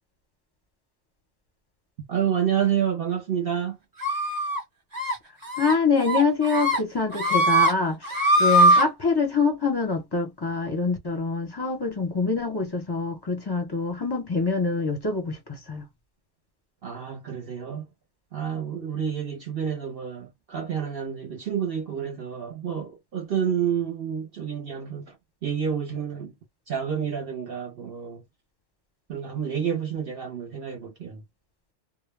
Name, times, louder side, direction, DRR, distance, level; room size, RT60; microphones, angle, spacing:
voice 1, 2.1-3.8 16.8-17.9 18.3-25.2 25.4-26.3 26.7-28.2 29.1-31.2, right 8 dB, 55° right, 0.7 m, -29 dB
sound 1, 4.0-4.6 4.9-5.1 5.5-5.7 6.1-6.8 7.1-7.7 8.0-8.8, right 1 dB, 20° right, 0.8 m, -21 dB
voice 2, 5.6-15.9, left 4 dB, 30° left, 0.5 m, -25 dB
2.1 x 2.0 x 3.1 m
omnidirectional pair, 1.3 m